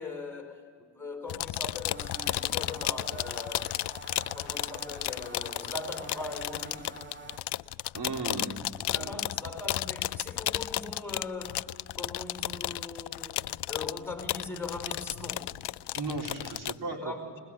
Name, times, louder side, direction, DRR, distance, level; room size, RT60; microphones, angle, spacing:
voice 1, 0.0-3.8 4.3-7.0 8.9-15.6 16.8-17.4, left 3 dB, 5° left, 4 dB, 4.9 m, -40 dB
sound 1, 1.3-16.8, left 14 dB, 65° left, 0.5 m, -33 dB
sound 2, 1.9-7.4, right 3 dB, 25° right, 2.1 m, -47 dB
voice 2, 7.9-8.7 9.0-9.2 15.9-17.1, right 3 dB, 60° right, 1 dB, 3.5 m, -36 dB
22.5 x 21.0 x 8.2 m, 2.1 s
cardioid pair, 85°, 44 cm